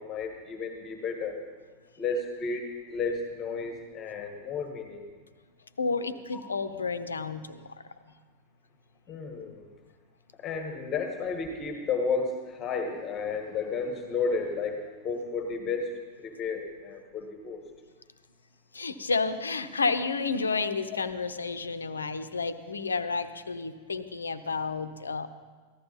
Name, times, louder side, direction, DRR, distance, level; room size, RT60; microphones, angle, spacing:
voice 1, 0.0-1.4 2.0-5.0 6.3-6.4 9.1-9.7 10.4-15.9 16.2-17.6, left 4 dB, 25° left, 4 dB, 1.7 m, -32 dB
voice 2, 5.8-7.6 18.7-25.3, left 4 dB, 75° left, 11 dB, 0.8 m, -31 dB
15.0 x 13.5 x 4.2 m, 1.4 s
figure-of-eight pair, 90°, 0 cm